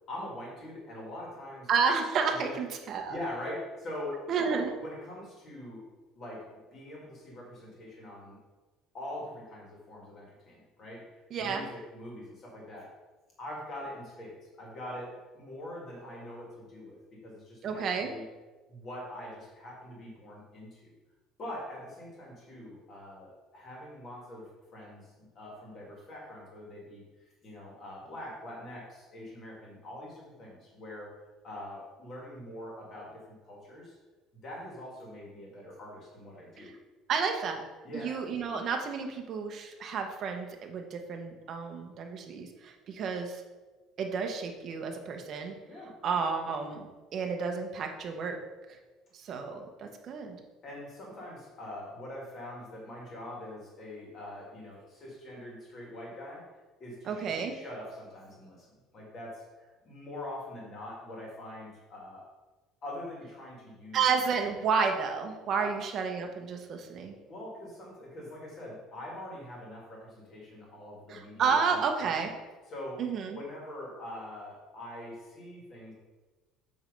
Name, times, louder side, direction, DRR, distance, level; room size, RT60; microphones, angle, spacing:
voice 1, 0.1-1.7 2.3-2.6 3.1-5.8 6.1-8.4 8.9-11.1 11.4-12.9 13.4-18.2 18.7-20.9 21.4-27.0 27.4-31.1 31.4-34.0 34.3-36.7 37.8-38.2 45.7-45.9 50.6-56.5 56.8-58.7 58.9-62.3 62.8-64.0 65.6-65.7 67.3-72.2 72.7-73.0 73.3-75.9, left 1 dB, 30° left, -3 dB, 1.9 m, -43 dB
voice 2, 1.7-3.2 4.3-4.7 11.3-11.6 17.6-18.1 36.6-36.7 37.1-37.6 37.9-43.4 44.0-45.5 46.0-48.4 49.1-50.4 57.1-57.6 63.9-67.2 71.1-72.4 73.0-73.4, right 5 dB, 35° right, 4 dB, 0.8 m, -31 dB
8.0 x 3.3 x 5.2 m, 1.2 s
cardioid pair, 180°, 0 cm